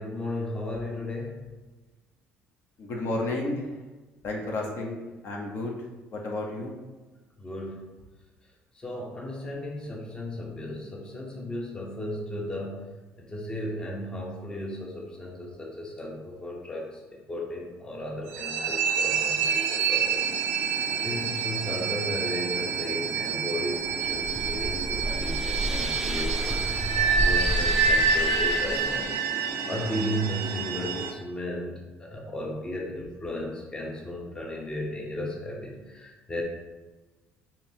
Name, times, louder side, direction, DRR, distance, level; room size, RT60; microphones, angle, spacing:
voice 1, 0.0-1.4 7.4-7.9 8.8-12.9 13.2-20.8 21.0-31.7 32.0-36.4, left 1 dB, 20° left, -1 dB, 0.7 m, -35 dB
voice 2, 2.8-3.7 4.2-5.8 6.1-6.7, left 2 dB, 55° left, -1 dB, 0.7 m, -32 dB
sound 1, 18.3-31.1, right 5 dB, 80° right, 0.4 m, -27 dB
sound 2, 23.8-29.1, right 1 dB, 10° right, 0.3 m, -31 dB
3.8 x 2.9 x 2.7 m, 1.2 s
cardioid pair, 110°, 4 cm